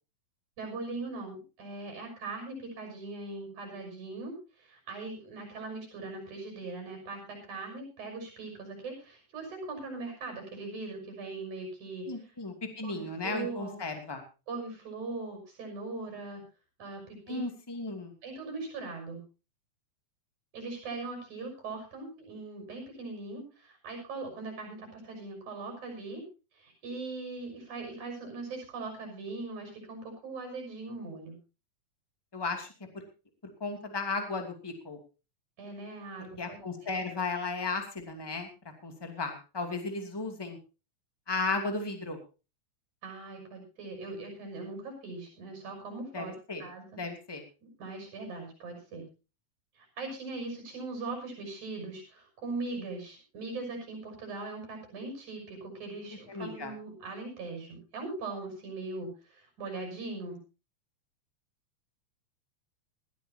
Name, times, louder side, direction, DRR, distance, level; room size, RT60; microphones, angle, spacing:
voice 1, 0.6-12.1 12.8-13.8 14.5-16.4 16.8-17.4 18.2-19.2 20.5-26.2 26.5-31.4 35.6-36.9 43.0-46.3 46.6-47.0 47.6-49.0 49.8-60.4, right 3 dB, 70° right, 3 dB, 7.5 m, -40 dB
voice 2, 12.0-14.2 17.3-18.1 32.3-32.7 32.9-33.0 33.6-35.0 36.4-38.5 38.8-40.6 41.3-42.2 46.1-46.6 47.0-47.4 56.3-56.7, left 3 dB, 10° left, 4 dB, 2.1 m, -35 dB
20.5 x 13.5 x 2.8 m, 0.31 s
omnidirectional pair, 3.5 m